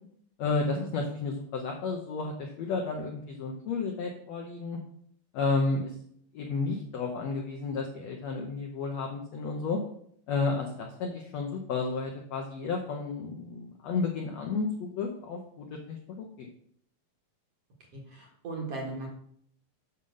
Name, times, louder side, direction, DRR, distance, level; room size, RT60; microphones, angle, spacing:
voice 1, 0.4-4.8 5.3-5.9 6.3-9.8 10.3-16.5, left 4 dB, 90° left, 2 dB, 1.4 m, -32 dB
voice 2, 17.9-19.1, right 3 dB, 50° right, 0 dB, 2.0 m, -37 dB
7.2 x 5.6 x 6.5 m, 0.67 s
omnidirectional pair, 4.4 m